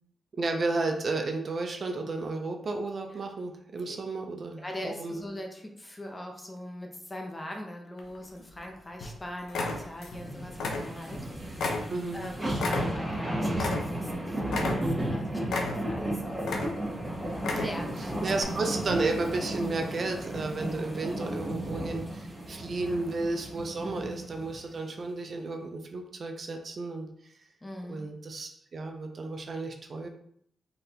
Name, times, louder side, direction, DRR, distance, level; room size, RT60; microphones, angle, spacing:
voice 1, 0.3-5.2 11.9-12.3 18.2-27.1 27.9-30.1, right 3 dB, 50° right, 3 dB, 0.5 m, -32 dB
voice 2, 4.6-11.5 12.1-16.7 17.5-18.6 22.5-23.0 23.8-24.1 27.6-28.1, left 1 dB, 20° left, 2 dB, 0.7 m, -41 dB
sound 1, 8.0-8.6 9.0-9.2 9.5-10.2 10.5-11.2 11.6-14.2 14.5-15.1 15.5-16.0 16.4-17.0 17.3-17.9 18.4-18.5, left 3 dB, 85° left, 0.6 m, -32 dB
sound 2, 10.1-24.6 25.0-25.1, right 1 dB, 15° right, 1.6 m, -34 dB
4.0 x 3.3 x 2.8 m, 0.67 s
cardioid pair, 100°, 0 cm